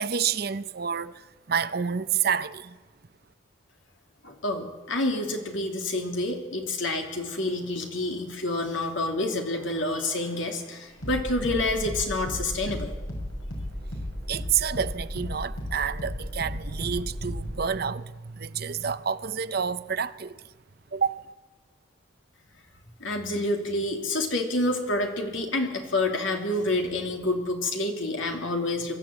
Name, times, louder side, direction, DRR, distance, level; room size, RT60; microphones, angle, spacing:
voice 1, 0.0-2.8 14.3-20.4 20.9-21.2, right 7 dB, 50° right, 0.6 m, -29 dB
voice 2, 4.2-12.9 23.0-29.0, left 2 dB, 70° left, 2.9 m, -28 dB
sound 1, 9.1-17.6, equal, 85° left, 7.3 m, -35 dB
23.0 x 14.0 x 8.7 m
head